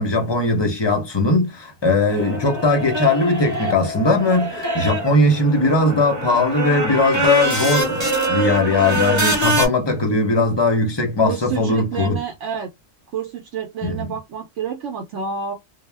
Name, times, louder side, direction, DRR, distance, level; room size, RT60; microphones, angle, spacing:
voice 1, 0.0-8.0 8.3-12.2 13.8-14.1, left 2 dB, 30° left, 0.5 m, -19 dB
sound 1, 2.1-9.7, right 1 dB, 15° right, 0.8 m, -24 dB
voice 2, 11.2-12.7 13.1-15.5, right 6 dB, 75° right, 0.9 m, -29 dB
2.3 x 2.1 x 3.2 m
omnidirectional pair, 1.3 m